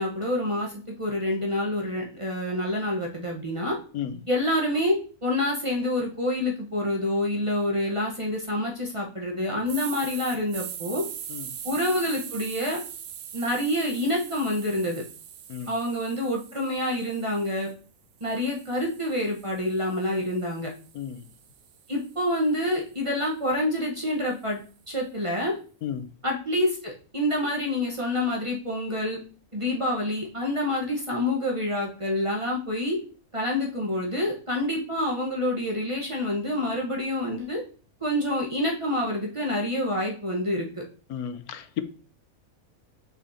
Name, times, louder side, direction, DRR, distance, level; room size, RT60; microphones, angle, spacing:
voice 1, 0.0-3.8 4.3-11.0 11.6-12.8 13.3-15.0 15.7-17.7 18.2-20.7 21.9-25.6 26.2-29.2 29.5-33.0 33.3-37.6 38.0-40.7, left 1 dB, 25° right, 1.1 m, -27 dB
sound 1, 9.7-17.7 18.2-22.4, right 9 dB, 80° right, 1.1 m, -42 dB
voice 2, 41.1-41.8, left 9 dB, 85° left, 1.2 m, -33 dB
6.3 x 5.9 x 2.8 m
omnidirectional pair, 1.5 m